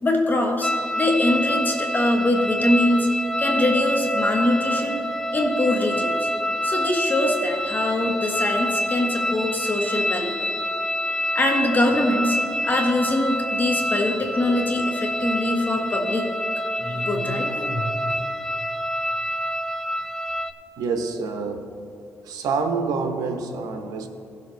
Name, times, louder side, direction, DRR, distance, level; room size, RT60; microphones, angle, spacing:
voice 1, 0.0-3.1 3.4-5.0 5.3-6.3 6.6-10.5 11.3-12.4 12.6-16.3 16.7-17.9, left 1 dB, 30° left, 1 dB, 1.5 m, -23 dB
sound 1, 0.6-20.5, equal, 5° left, 0.5 m, -27 dB
voice 2, 20.8-21.7 22.2-24.1, right 4 dB, 90° right, 6 dB, 0.9 m, -27 dB
17.0 x 6.6 x 3.3 m, 2.6 s
cardioid pair, 90°, 6 cm